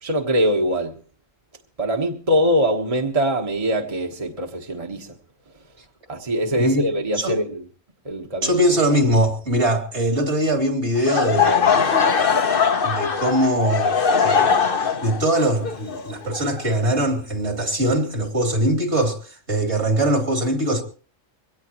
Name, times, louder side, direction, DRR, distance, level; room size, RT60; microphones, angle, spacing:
voice 1, 0.0-0.9 1.8-5.1 6.1-7.6 8.0-8.5, equal, 30° right, 1.5 m, -22 dB
voice 2, 6.5-7.4 8.4-11.9 12.8-20.8, right 1 dB, 60° right, 3.4 m, -22 dB
Laughter / Crowd, 11.0-16.9, left 6 dB, 45° left, 1.1 m, -20 dB
23.0 x 17.5 x 3.1 m
omnidirectional pair, 1.3 m